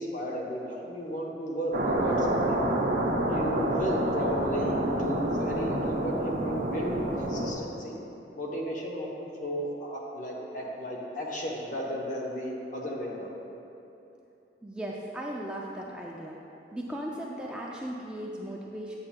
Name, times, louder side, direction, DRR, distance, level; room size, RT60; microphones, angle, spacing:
voice 1, 0.0-2.6 3.3-7.9 8.4-13.3, equal, 45° left, -2 dB, 0.9 m, -34 dB
sound 1, 1.7-7.5, right 1 dB, 50° right, 0.6 m, -28 dB
voice 2, 14.6-16.4 16.7-19.0, right 1 dB, 5° right, -3 dB, 0.3 m, -37 dB
8.6 x 7.2 x 2.2 m, 2.9 s
head